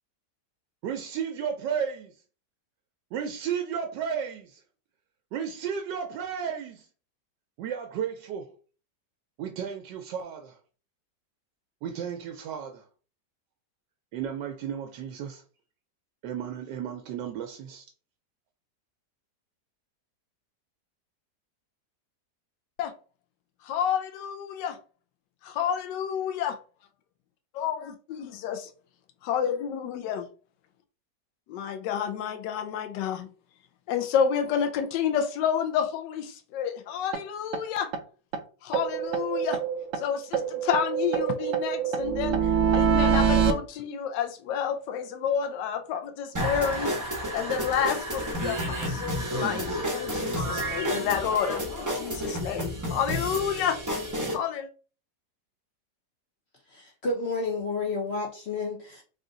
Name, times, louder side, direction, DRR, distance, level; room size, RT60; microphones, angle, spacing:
voice 1, 0.8-2.1 3.1-4.6 5.3-6.9 7.6-8.5 9.4-10.6 11.8-12.8 14.1-15.4 16.2-17.8, right 8 dB, 85° right, 1.2 m, -33 dB
voice 2, 23.6-24.8 25.4-26.6 27.6-27.9 28.2-28.7 29.2-30.3 31.5-33.3 33.9-37.9 38.6-39.6 40.0-46.9 47.3-53.8 54.3-54.7, left 8 dB, 85° left, 1.2 m, -29 dB
sound 1, 37.1-37.2 37.5-37.6 37.9-38.0 38.3-38.4 38.7-40.0 40.3-43.5, right 7 dB, 70° right, 0.7 m, -25 dB
sound 2, 46.3-54.3, equal, 20° right, 0.4 m, -31 dB
voice 3, 56.7-59.0, left 3 dB, 65° left, 0.6 m, -31 dB
3.7 x 2.4 x 3.8 m
omnidirectional pair, 1.9 m